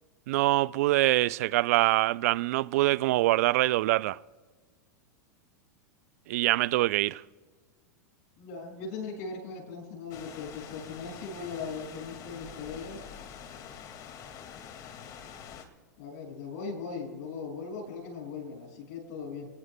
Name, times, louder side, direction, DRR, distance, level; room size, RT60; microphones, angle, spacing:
voice 1, 0.3-4.2 6.3-7.2, right 18 dB, 60° right, 0.4 m, -24 dB
voice 2, 8.4-13.1 16.0-19.5, left 4 dB, 60° left, 6.3 m, -39 dB
sound 1, 10.1-15.7, left 8 dB, 40° left, 2.1 m, -46 dB
30.0 x 19.5 x 2.3 m
hypercardioid pair, 95°, 9 cm